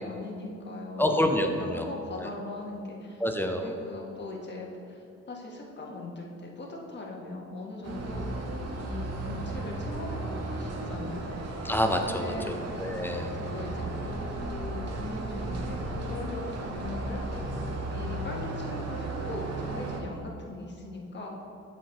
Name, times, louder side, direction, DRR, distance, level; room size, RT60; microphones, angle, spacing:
voice 1, 0.0-1.1 1.5-3.2 3.6-8.5 8.7-11.4 12.2-12.7 13.2-17.2 17.9-21.4, left 2 dB, 35° left, -1 dB, 1.3 m, -40 dB
voice 2, 1.0-1.9 2.2-2.3 3.2-3.7 11.6-13.3, left 1 dB, 5° left, 4 dB, 0.5 m, -27 dB
sound 1, 7.8-20.0, right 2 dB, 55° right, 0.9 m, -35 dB
7.1 x 4.3 x 4.3 m, 2.7 s
cardioid pair, 90°, 30 cm